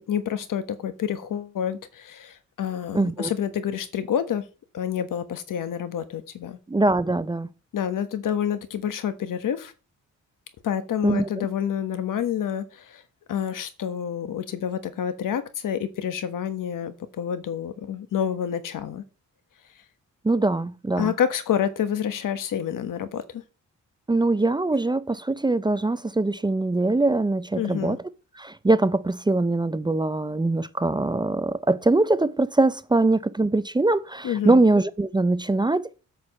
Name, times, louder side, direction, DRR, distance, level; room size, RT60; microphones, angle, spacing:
voice 1, 0.0-4.4 4.7-6.6 7.7-9.7 10.6-13.0 13.3-19.0 21.0-23.4 27.6-28.0 34.2-34.6, left 9 dB, 85° left, 1.2 m, -28 dB
voice 2, 2.9-3.3 6.7-7.5 11.0-11.5 20.2-21.1 24.1-28.0 28.4-36.0, right 2 dB, 15° right, 0.5 m, -22 dB
8.5 x 4.8 x 7.3 m
wide cardioid pair, 125°, 31 cm